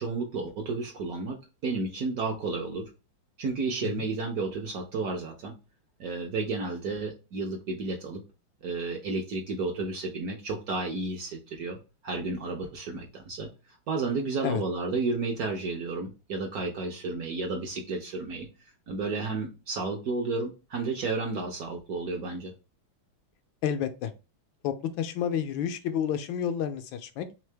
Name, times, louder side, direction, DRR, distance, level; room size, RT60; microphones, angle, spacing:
voice 1, 0.0-2.9 3.4-5.5 6.0-8.2 8.6-11.8 12.0-13.5 13.9-18.5 18.9-22.5, right 3 dB, 60° right, 2 dB, 1.0 m, -32 dB
voice 2, 23.6-24.1 24.6-27.3, left 9 dB, 80° left, 9 dB, 1.3 m, -30 dB
3.7 x 3.3 x 3.3 m, 0.29 s
omnidirectional pair, 2.2 m